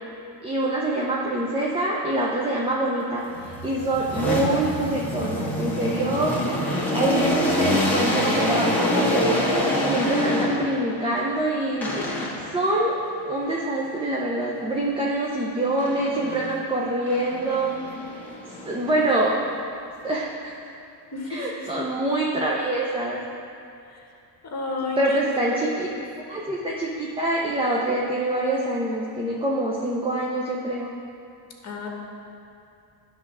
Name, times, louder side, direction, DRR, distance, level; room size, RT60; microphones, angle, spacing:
voice 1, 0.4-6.3 6.9-12.1 12.5-12.9 13.3-18.0 18.6-19.3 20.0-20.7 21.3-23.2 25.0-25.9 26.2-30.9, right 1 dB, 10° right, -4 dB, 0.6 m, -25 dB
sound 1, 3.3-10.9 11.8-12.6 15.8-16.6 17.1-19.4, left 1 dB, 5° left, 1.4 m, -26 dB
voice 2, 21.1-21.7 23.8-24.1 24.4-25.2 25.5-26.0 31.6-31.9, left 3 dB, 35° left, 0 dB, 1.5 m, -32 dB
10.5 x 3.6 x 6.1 m, 2.6 s
cardioid pair, 120°, 48 cm